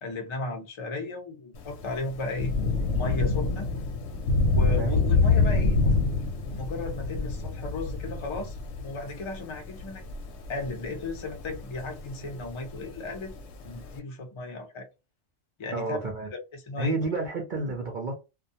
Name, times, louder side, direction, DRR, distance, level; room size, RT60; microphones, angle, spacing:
voice 1, 0.0-2.5 2.9-3.7 4.5-6.1 6.5-10.0 10.5-13.3 13.6-14.9 15.6-16.1 16.5-17.0, left 2 dB, 50° left, 0.3 m, -35 dB
Thunder / Rain, 1.6-14.0, left 3 dB, 65° left, 0.8 m, -27 dB
voice 2, 15.7-16.3 16.8-18.1, right 3 dB, 55° right, 0.5 m, -30 dB
2.2 x 2.2 x 2.7 m
omnidirectional pair, 1.4 m